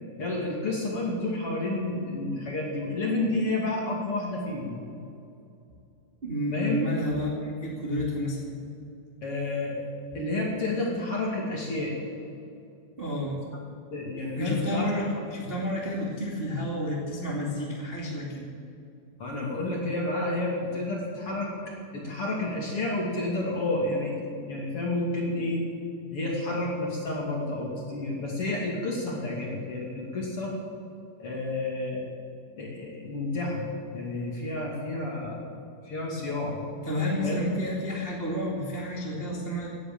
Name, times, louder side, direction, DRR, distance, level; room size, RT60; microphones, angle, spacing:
voice 1, 0.2-4.8 6.5-6.8 9.2-9.8 10.1-11.9 13.9-14.9 19.2-21.5 21.9-25.6 26.1-30.5 31.2-32.0 32.6-33.7 33.9-35.4 35.8-36.7 37.2-37.5, left 2 dB, 40° left, -3 dB, 2.7 m, -30 dB
voice 2, 6.2-8.5 13.0-13.4 14.4-18.4 36.8-39.7, left 1 dB, 25° right, -4 dB, 1.2 m, -30 dB
18.0 x 10.5 x 7.5 m, 2.6 s
omnidirectional pair, 5.2 m